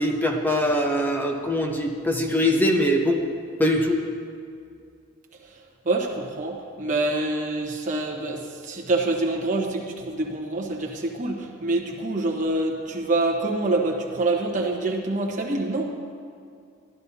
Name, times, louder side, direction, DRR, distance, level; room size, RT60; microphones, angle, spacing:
voice 1, 0.0-3.2 3.6-4.0, left 1 dB, 10° left, 2 dB, 0.7 m, -22 dB
voice 2, 5.8-15.8, right 2 dB, 35° right, -1 dB, 1.1 m, -26 dB
13.0 x 11.0 x 2.8 m, 2.3 s
head